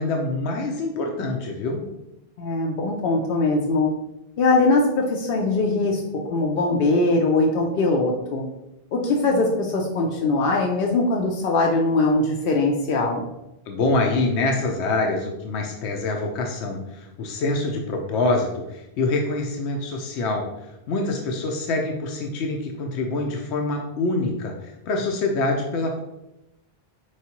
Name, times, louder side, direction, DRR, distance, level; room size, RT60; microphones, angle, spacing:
voice 1, 0.0-1.8 13.7-20.4 20.9-26.0, left 2 dB, 85° left, 1 dB, 0.9 m, -25 dB
voice 2, 2.4-3.9 4.4-6.0 6.3-8.5 8.9-13.2, left 2 dB, 65° left, 0 dB, 0.7 m, -21 dB
4.7 x 3.1 x 2.9 m, 0.89 s
omnidirectional pair, 1.1 m